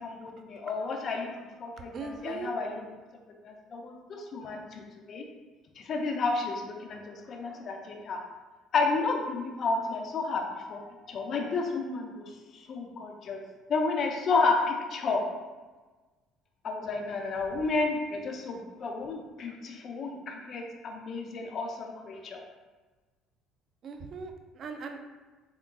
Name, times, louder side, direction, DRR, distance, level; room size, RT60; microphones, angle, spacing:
voice 1, 0.0-1.3 1.6-2.8 3.4-4.8 5.1-5.2 5.8-8.2 8.7-10.4 10.7-12.2 12.5-13.4 13.7-15.2 16.6-22.4, left 3 dB, 50° left, 3 dB, 0.6 m, -31 dB
voice 2, 1.9-2.5 23.8-25.0, right 4 dB, 50° right, 5 dB, 0.4 m, -39 dB
3.6 x 3.6 x 2.3 m, 1.3 s
hypercardioid pair, 70°, 0 cm